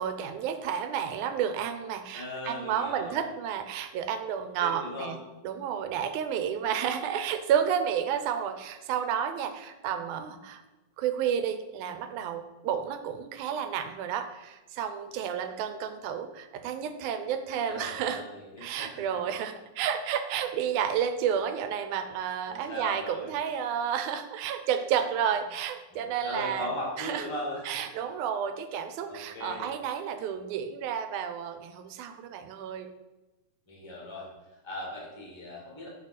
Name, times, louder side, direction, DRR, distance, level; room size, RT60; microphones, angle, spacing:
voice 1, 0.0-5.2 5.4-10.6 11.0-18.2 18.6-26.7 27.0-27.2 27.7-32.9, right 8 dB, 85° right, 9 dB, 2.0 m, -31 dB
voice 2, 2.1-3.2 4.6-5.2 17.7-19.0 22.5-23.3 25.9-27.9 29.1-29.7 33.7-35.9, left 1 dB, 20° left, -3 dB, 0.6 m, -38 dB
6.2 x 5.6 x 4.1 m, 1.1 s
omnidirectional pair, 3.4 m